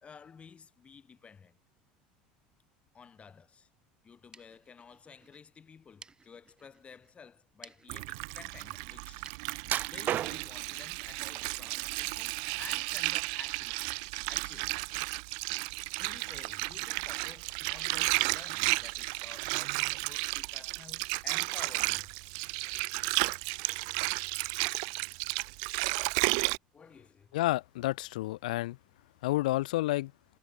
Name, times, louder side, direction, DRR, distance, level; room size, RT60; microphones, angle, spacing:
voice 1, 0.0-1.6 2.9-3.7 4.0-9.2 9.8-13.9 14.3-14.9 16.0-22.1 25.4-26.0 26.7-27.3, left 6 dB, 30° left, 4.6 m, -53 dB
sound 1, 4.0-11.5, right 4 dB, 20° right, 2.7 m, -59 dB
Water, 7.9-26.6, right 40 dB or more, 70° right, 0.9 m, -33 dB
sound 2, 9.6-10.7 11.4-12.0 12.4-13.3 13.7-13.9 14.4-14.5, right 11 dB, 45° right, 0.6 m, -34 dB
voice 2, 27.3-28.8 29.2-30.1, left 17 dB, 80° left, 0.8 m, -30 dB
hypercardioid pair, 85°, 4 cm